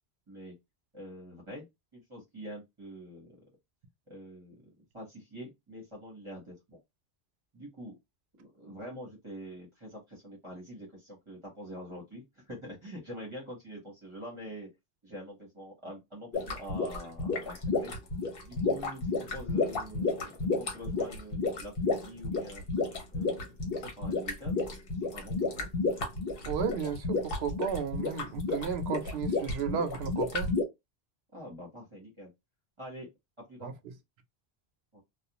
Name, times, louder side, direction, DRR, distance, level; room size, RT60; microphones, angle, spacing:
voice 1, 0.9-1.7 1.9-3.4 4.1-4.5 4.9-6.8 7.5-8.0 8.4-14.7 15.0-17.9 18.4-22.6 23.1-23.5 23.7-24.6 25.1-25.7 31.3-32.3 32.8-33.1 33.5-33.7 34.9-35.0, equal, 30° right, 1.0 m, -45 dB
sound 1, 16.3-30.6, left 3 dB, 65° left, 1.0 m, -31 dB
voice 2, 26.5-30.5 33.6-33.7, right 7 dB, 80° right, 0.8 m, -33 dB
2.4 x 2.3 x 2.8 m
omnidirectional pair, 1.0 m